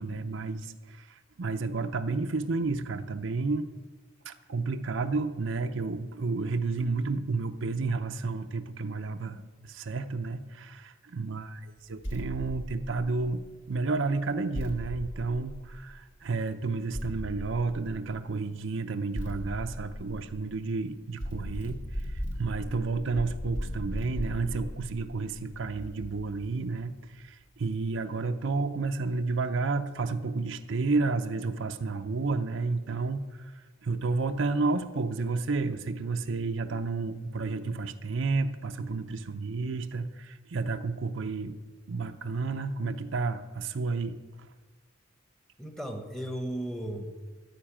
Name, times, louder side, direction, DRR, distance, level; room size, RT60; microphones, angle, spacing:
voice 1, 0.0-3.7 4.2-13.4 13.7-21.8 22.4-41.6 41.9-44.2, right 3 dB, 70° right, 8 dB, 0.6 m, -31 dB
sound 1, 12.0-13.5 14.5-16.2 16.9-18.3 19.1-20.7 21.2-26.5, equal, 70° left, 1.9 m, -38 dB
voice 2, 45.6-47.3, right 1 dB, ahead, 4 dB, 1.0 m, -35 dB
13.5 x 5.2 x 8.9 m, 1.3 s
head